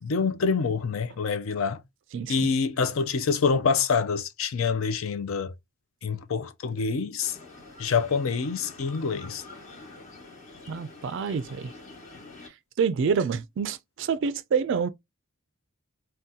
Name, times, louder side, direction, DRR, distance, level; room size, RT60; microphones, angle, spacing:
voice 1, 0.0-1.8 2.3-5.5 6.0-7.4 7.8-9.4, left 5 dB, 65° left, 0.4 m, -26 dB
voice 2, 2.1-2.5 10.7-11.7 12.5-14.9, right 6 dB, 55° right, 0.3 m, -27 dB
sound 1, 7.2-12.5, left 2 dB, 35° left, 1.0 m, -47 dB
2.7 x 2.3 x 3.6 m
head